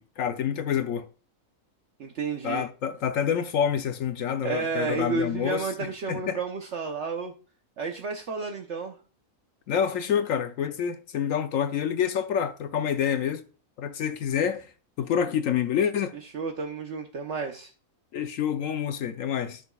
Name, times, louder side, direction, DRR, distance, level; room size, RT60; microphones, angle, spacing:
voice 1, 0.2-1.1 2.4-5.7 6.1-6.4 9.7-13.4 13.8-14.7 15.0-16.1 18.1-19.6, left 8 dB, 75° left, 1.0 m, -27 dB
voice 2, 2.0-2.6 4.4-7.3 7.8-9.0 16.3-17.7, right 4 dB, 60° right, 1.1 m, -31 dB
13.5 x 6.2 x 2.3 m
omnidirectional pair, 1.4 m